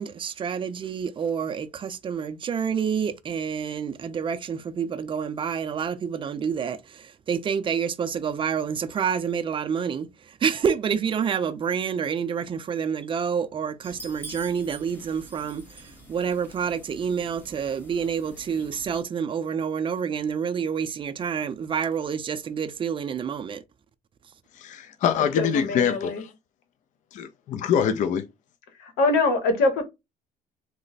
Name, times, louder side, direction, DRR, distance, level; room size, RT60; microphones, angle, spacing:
voice 1, 0.0-23.6, right 7 dB, 30° right, 0.4 m, -28 dB
sound 1, 13.8-19.0, right 2 dB, 10° left, 1.1 m, -46 dB
voice 2, 24.6-26.3 27.1-28.3, left 8 dB, 50° left, 0.4 m, -25 dB
voice 3, 25.1-26.2 28.8-29.8, left 3 dB, 90° left, 1.0 m, -24 dB
3.1 x 2.0 x 4.0 m
cardioid pair, 110°, 17 cm